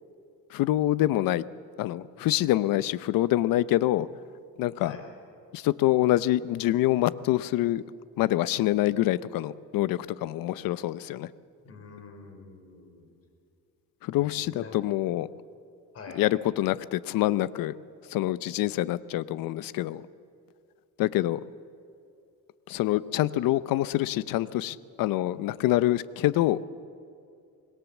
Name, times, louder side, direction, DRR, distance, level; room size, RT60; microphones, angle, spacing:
voice 1, 0.5-1.4 1.8-4.1 4.6-5.0 5.5-7.8 8.2-11.3 14.0-15.3 16.1-17.7 18.1-20.0 21.0-21.4 22.7-26.6, left 15 dB, 75° left, 17 dB, 0.7 m, -26 dB
voice 2, 11.6-13.1 14.2-14.8 15.9-16.2, left 4 dB, 45° left, 4 dB, 4.8 m, -45 dB
25.5 x 20.5 x 7.3 m, 2.5 s
cardioid pair, 135°, 34 cm